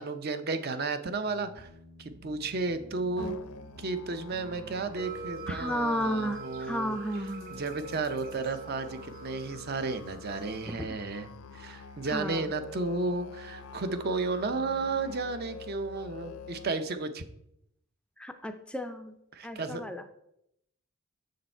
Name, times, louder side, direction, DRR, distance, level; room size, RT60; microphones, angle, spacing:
voice 1, 0.0-1.7 2.0-3.4 3.8-7.0 7.5-17.3 19.3-19.8, right 3 dB, 45° right, 10 dB, 0.6 m, -33 dB
sound 1, 1.2-6.5, equal, 85° right, 1.5 m, -52 dB
Musical instrument, 3.2-16.7, left 5 dB, 70° left, 0.5 m, -47 dB
sound 2, 5.0-10.7, right 4 dB, 60° right, 2.1 m, -44 dB
voice 2, 5.5-7.6 10.7-10.9 12.0-12.5 18.2-19.1 19.4-20.0, equal, 5° left, 7 dB, 0.3 m, -33 dB
6.6 x 6.3 x 4.4 m, 0.78 s
head